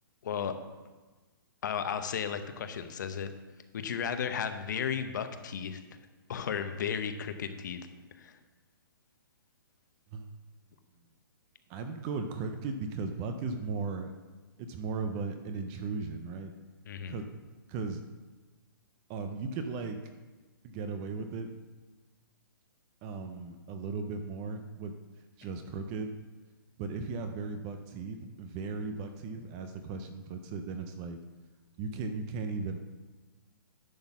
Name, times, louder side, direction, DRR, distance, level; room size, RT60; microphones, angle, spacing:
voice 1, 0.2-0.5 1.6-3.3 3.7-5.8 6.3-7.8 8.2-8.4 16.9-17.2, left 7 dB, 55° left, 9 dB, 0.8 m, -34 dB
voice 2, 11.7-14.1 14.6-16.5 17.1-17.2 17.7-18.0 19.1-20.0 20.6-21.5 23.0-24.9 25.4-26.1 26.8-31.2 31.8-32.8, right 4 dB, 15° right, 7 dB, 0.3 m, -36 dB
10.5 x 4.0 x 7.0 m, 1.3 s
hypercardioid pair, 165°, 12 cm